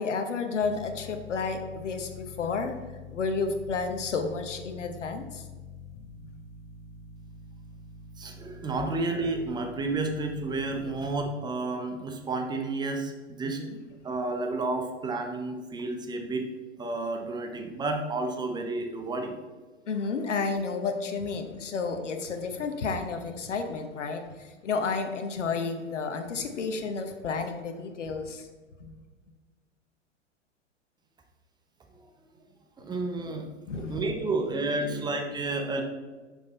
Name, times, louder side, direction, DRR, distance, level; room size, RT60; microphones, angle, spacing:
voice 1, 0.0-2.8 3.1-5.4 6.2-6.3 8.8-8.9 13.4-13.8 19.9-28.5 28.8-28.9 33.7-34.1 34.8-35.1, left 4 dB, 75° left, 6 dB, 1.0 m, -31 dB
sound 1, 0.6-11.3, left 4 dB, 20° left, 0.7 m, -46 dB
voice 2, 8.2-13.6 14.0-16.5 16.8-19.4 32.8-33.5 33.7-35.8, right 2 dB, 10° right, 4 dB, 0.8 m, -31 dB
6.3 x 5.4 x 4.1 m, 1.3 s
figure-of-eight pair, 100°, 36 cm